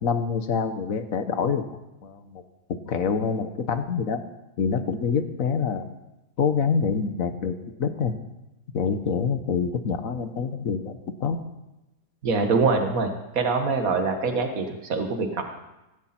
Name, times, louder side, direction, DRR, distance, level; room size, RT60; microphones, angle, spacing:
voice 1, 0.0-2.4 2.7-4.2 4.6-5.9 6.4-8.1 8.7-11.4, left 6 dB, 55° left, 9 dB, 1.4 m, -26 dB
voice 2, 12.2-15.4, right 4 dB, 55° right, 5 dB, 2.0 m, -24 dB
17.0 x 16.5 x 4.4 m, 0.97 s
omnidirectional pair, 1.8 m